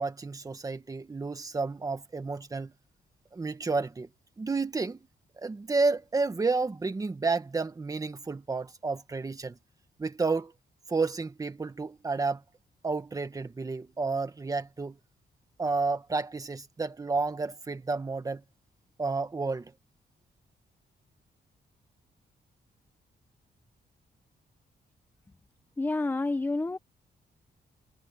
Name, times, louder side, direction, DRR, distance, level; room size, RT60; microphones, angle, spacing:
voice 1, 0.0-2.7 3.3-4.1 4.4-5.0 5.4-9.6 10.0-10.5 10.9-12.4 12.8-15.0 15.6-18.4 19.0-19.7, right 3 dB, 20° right, 1.5 m, -31 dB
voice 2, 25.8-26.8, left 2 dB, 10° left, 0.7 m, -29 dB
wide cardioid pair, 165°, 17 cm